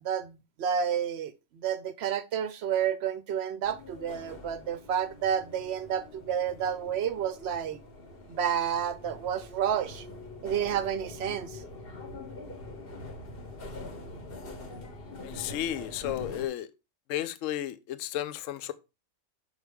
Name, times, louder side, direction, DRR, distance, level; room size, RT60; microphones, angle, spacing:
voice 1, 0.0-7.8 8.3-10.1 10.4-11.6, right 8 dB, 60° right, 0.7 m, -30 dB
sound 1, 3.6-16.5, left 2 dB, 45° left, 1.1 m, -44 dB
voice 2, 15.2-16.7 17.1-18.7, left 12 dB, 70° left, 0.9 m, -33 dB
6.6 x 4.5 x 3.4 m
omnidirectional pair, 1.5 m